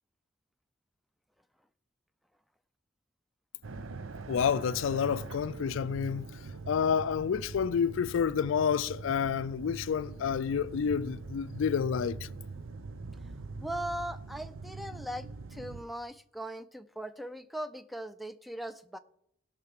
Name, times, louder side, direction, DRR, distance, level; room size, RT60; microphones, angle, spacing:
sound 1, 3.6-15.8, right 3 dB, 80° right, 0.7 m, -43 dB
voice 1, 4.3-6.3 6.7-12.3, left 7 dB, 70° left, 0.4 m, -29 dB
voice 2, 13.6-19.0, right 1 dB, ahead, 0.4 m, -39 dB
16.5 x 5.8 x 6.0 m
head